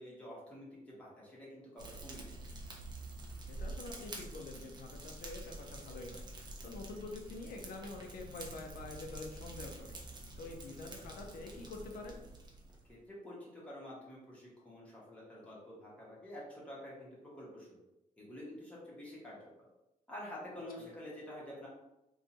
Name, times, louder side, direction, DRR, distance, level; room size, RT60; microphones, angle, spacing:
voice 1, 0.0-2.4 12.9-17.8 18.2-19.4 20.1-21.7, left 1 dB, 10° left, -6 dB, 1.1 m, -48 dB
Fire, 1.8-12.9, right 2 dB, 30° right, 0.6 m, -47 dB
voice 2, 3.5-10.0 10.4-12.2 20.8-20.9, left 3 dB, 90° left, 2 dB, 0.6 m, -47 dB
2.6 x 2.4 x 4.0 m, 0.92 s
wide cardioid pair, 165°, 15 cm